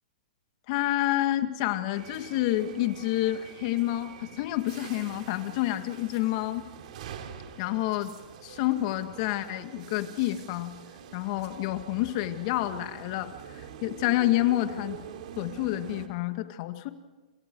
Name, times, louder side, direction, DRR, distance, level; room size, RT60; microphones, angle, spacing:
voice 1, 0.7-6.7 7.6-8.1 8.4-10.7 11.1-15.0 15.4-16.9, left 15 dB, 45° left, 8 dB, 2.0 m, -28 dB
sound 1, 1.9-16.1, right 8 dB, 60° right, 3.2 m, -45 dB
28.5 x 28.0 x 4.8 m, 1.2 s
hypercardioid pair, 145°, 5 cm